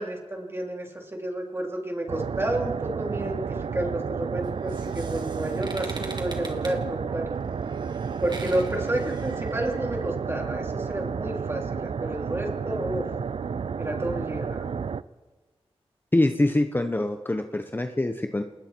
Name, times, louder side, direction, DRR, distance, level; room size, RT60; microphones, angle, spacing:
voice 1, 0.0-7.3 8.2-13.1 13.8-14.7, right 1 dB, 25° right, 0 dB, 3.7 m, -30 dB
sound 1, 2.1-15.0, right 6 dB, 70° right, 0.5 m, -31 dB
sound 2, 4.4-10.0, right 3 dB, 45° right, 2.6 m, -43 dB
voice 2, 16.1-18.4, left 1 dB, 20° left, 6 dB, 1.0 m, -24 dB
28.0 x 20.0 x 4.6 m, 1.3 s
wide cardioid pair, 75°, 10 cm